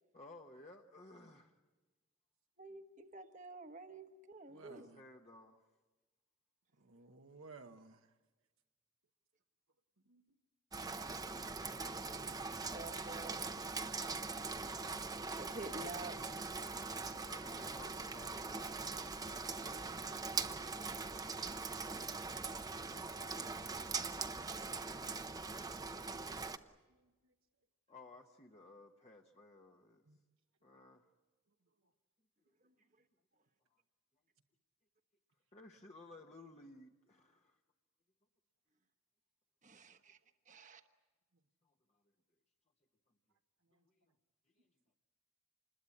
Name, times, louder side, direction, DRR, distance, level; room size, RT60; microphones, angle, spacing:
voice 1, 0.1-1.5 4.5-5.7 11.4-12.3 17.0-20.0 22.8-23.9 27.9-30.0 30.6-31.0 33.7-33.8 35.5-37.6 41.6-42.0 43.8-44.1 44.6-44.7, left 2 dB, 30° left, 2 dB, 1.0 m, -58 dB
voice 2, 2.6-4.9 12.7-13.7 15.4-16.5 39.6-40.2 40.5-40.8, right 2 dB, 35° right, 8 dB, 1.2 m, -50 dB
voice 3, 4.5-5.0 6.8-8.1 15.8-15.9 26.7-27.3 30.1-30.2 32.6-32.7 43.7-43.8, right 4 dB, 70° right, 4 dB, 1.1 m, -58 dB
Rain, 10.7-26.6, right 4 dB, 15° right, 0.7 m, -42 dB
27.0 x 21.0 x 8.5 m, 1.3 s
head